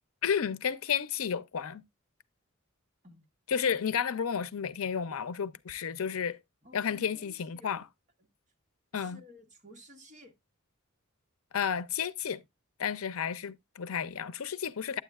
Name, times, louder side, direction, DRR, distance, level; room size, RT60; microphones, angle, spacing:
voice 1, 0.2-1.8 3.5-6.4 6.7-7.8 8.9-9.2 11.5-12.4 12.8-15.0, left 7 dB, 80° left, 0.6 m, -32 dB
voice 2, 6.6-7.8 8.9-10.3, left 1 dB, 35° right, 1.5 m, -54 dB
9.2 x 8.1 x 2.3 m
head